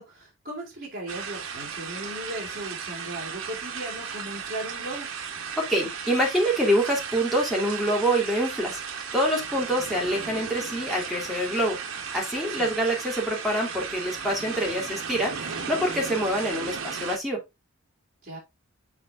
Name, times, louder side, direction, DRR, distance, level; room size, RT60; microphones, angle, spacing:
voice 1, 0.0-5.1 12.6-12.7 18.2-18.4, right 1 dB, 45° right, -4 dB, 3.1 m, -37 dB
sound 1, 1.1-17.2, right 6 dB, 75° right, 1.1 m, -35 dB
voice 2, 5.6-11.8 12.1-17.4, equal, ahead, -2 dB, 2.3 m, -26 dB
7.2 x 4.4 x 3.6 m, 0.22 s
head